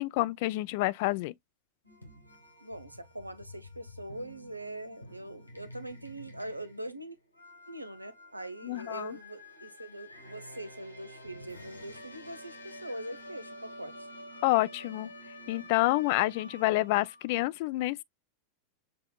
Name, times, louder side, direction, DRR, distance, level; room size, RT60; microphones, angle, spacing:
voice 1, 0.0-1.3 8.6-9.2 14.4-15.1 15.5-18.0, left 19 dB, 50° left, 0.4 m, -28 dB
sound 1, 1.8-17.3, left 1 dB, 85° left, 1.3 m, -49 dB
voice 2, 2.6-7.2 7.7-14.1, right 1 dB, 85° right, 0.7 m, -42 dB
6.8 x 2.9 x 2.2 m
figure-of-eight pair, 90°, 0 cm